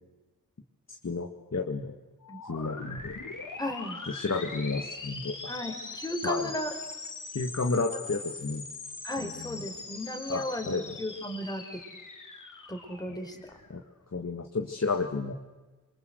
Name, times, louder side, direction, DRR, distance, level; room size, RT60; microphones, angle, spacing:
voice 1, 1.0-1.9 2.5-3.1 4.1-5.5 6.2-6.5 7.3-8.6 9.2-9.6 10.3-11.0 13.1-13.2 13.7-13.8 14.1-15.3, left 3 dB, 50° left, 3 dB, 2.0 m, -32 dB
sound 1, 2.2-13.9, left 3 dB, 65° left, 3.5 m, -42 dB
voice 2, 3.6-4.0 5.5-6.7 7.7-7.8 9.0-11.8 12.7-13.4, left 1 dB, 10° left, 4 dB, 4.7 m, -35 dB
27.0 x 23.5 x 8.0 m, 1.2 s
wide cardioid pair, 60°, 34 cm